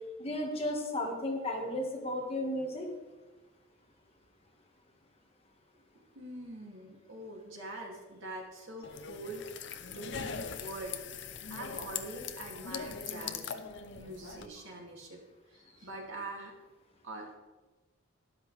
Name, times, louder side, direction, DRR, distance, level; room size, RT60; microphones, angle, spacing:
voice 1, 0.2-2.9, left 1 dB, 30° left, 0 dB, 1.7 m, -34 dB
voice 2, 6.1-9.4 9.9-11.0 11.5-13.5 14.0-15.2 15.5-16.5 17.0-17.4, right 2 dB, 70° right, -1 dB, 2.6 m, -44 dB
sound 1, 8.8-14.5, left 6 dB, 55° left, 0.7 m, -41 dB
13.0 x 11.5 x 3.4 m, 1.2 s
head